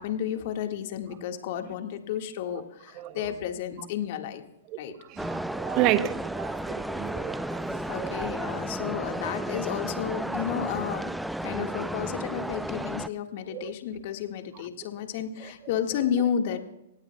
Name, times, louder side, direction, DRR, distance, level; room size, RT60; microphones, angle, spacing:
voice 1, 0.0-4.4 4.8-4.9 7.9-11.1 11.4-16.6, left 9 dB, 55° left, 1.7 m, -32 dB
sound 1, 5.2-13.1, right 1 dB, 5° right, 0.5 m, -33 dB
voice 2, 5.2-8.2 13.5-13.7, right 14 dB, 40° right, 0.9 m, -30 dB
24.0 x 18.0 x 2.3 m
hypercardioid pair, 115°, 0 cm